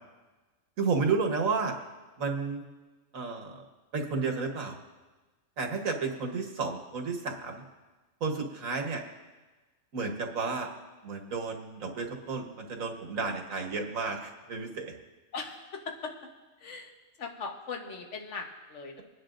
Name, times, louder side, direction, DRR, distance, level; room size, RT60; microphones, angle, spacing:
voice 1, 0.8-1.7 2.2-2.6 3.1-3.6 3.9-4.7 5.6-7.6 8.2-9.0 9.9-10.7 11.0-14.9, right 4 dB, 70° right, 2 dB, 1.6 m, -32 dB
voice 2, 15.3-16.1 16.6-16.9 17.2-19.0, left 4 dB, 55° left, 3 dB, 1.5 m, -39 dB
26.0 x 9.9 x 2.6 m, 1.2 s
omnidirectional pair, 1.5 m